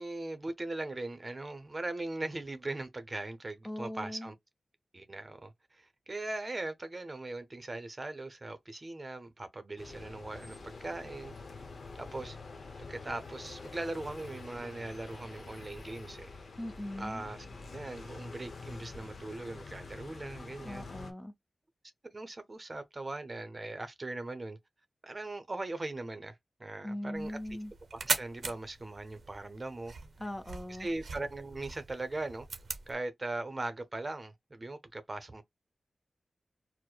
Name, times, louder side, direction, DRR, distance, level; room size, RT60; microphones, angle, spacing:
voice 1, 0.0-4.3 4.9-11.3 12.0-12.4 12.8-16.3 17.0-17.5 17.7-20.9 22.1-24.6 25.0-27.4 28.0-29.9 30.7-32.5 32.9-35.4, right 2 dB, 35° right, 0.7 m, -40 dB
voice 2, 3.6-4.3 16.6-17.2 20.6-21.3 26.8-27.7 30.2-30.9, left 1 dB, 20° left, 0.6 m, -40 dB
sound 1, 9.8-21.1, left 3 dB, 70° left, 0.8 m, -47 dB
sound 2, 27.1-32.9, right 4 dB, 75° right, 0.6 m, -40 dB
4.6 x 2.1 x 2.2 m
wide cardioid pair, 75°, 0 cm